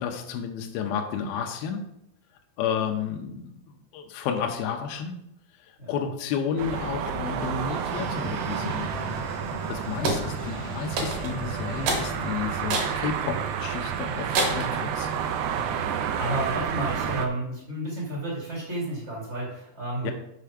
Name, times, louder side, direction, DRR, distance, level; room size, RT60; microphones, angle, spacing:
voice 1, 0.0-1.8 2.6-3.5 3.9-5.1 5.9-15.1 20.0-20.1, left 7 dB, 80° left, 3 dB, 2.3 m, -31 dB
sound 1, 6.6-17.3, right 8 dB, 85° right, 2.1 m, -30 dB
sound 2, 7.9-13.0, left 1 dB, 35° left, 0.4 m, -37 dB
sound 3, 10.0-10.3 11.0-11.4 11.9-12.1 12.7-13.0 13.5-13.6 14.3-14.7, right 2 dB, 60° right, 2.8 m, -26 dB
voice 2, 15.4-15.8 16.1-20.1, right 1 dB, 35° right, -4 dB, 1.1 m, -32 dB
6.9 x 5.7 x 4.9 m, 0.81 s
omnidirectional pair, 4.9 m